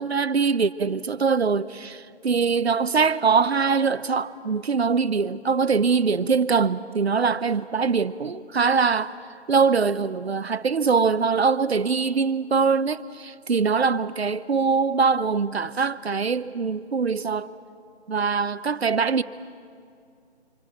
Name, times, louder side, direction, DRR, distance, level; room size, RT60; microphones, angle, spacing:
voice 1, 0.0-9.1 9.5-17.5 18.1-19.2, right 5 dB, 65° right, 0.9 m, -23 dB
26.5 x 23.5 x 6.2 m
figure-of-eight pair, 165°, 34 cm